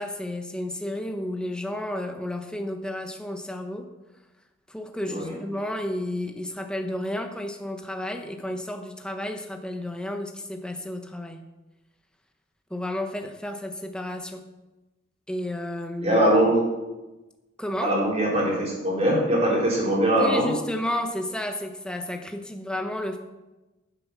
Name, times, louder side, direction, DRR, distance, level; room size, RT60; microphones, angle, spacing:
voice 1, 0.0-3.9 4.7-11.5 12.7-14.4 15.3-16.2 17.6-18.0 20.2-23.2, left 1 dB, 5° left, 5 dB, 1.0 m, -32 dB
voice 2, 16.0-16.6 17.8-20.5, right 1 dB, 30° right, -3 dB, 4.2 m, -22 dB
12.5 x 7.6 x 6.0 m, 1.1 s
head